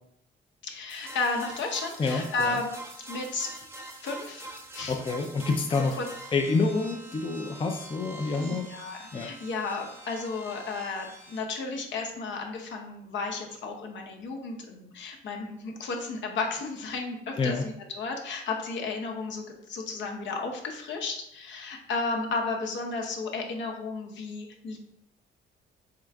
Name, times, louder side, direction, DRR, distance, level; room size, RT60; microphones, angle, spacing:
voice 1, 0.6-2.7 3.1-3.5 4.0-5.0 5.7-6.1 8.3-24.8, left 3 dB, 70° left, 1 dB, 0.8 m, -33 dB
sound 1, 0.9-11.4, right 2 dB, 10° right, 0.7 m, -45 dB
voice 2, 2.0-2.6 4.9-6.0 6.3-8.7 9.1-9.3 17.4-17.6, left 3 dB, 25° left, 3 dB, 0.5 m, -28 dB
3.7 x 3.6 x 3.4 m, 0.77 s
cardioid pair, 90°, 20 cm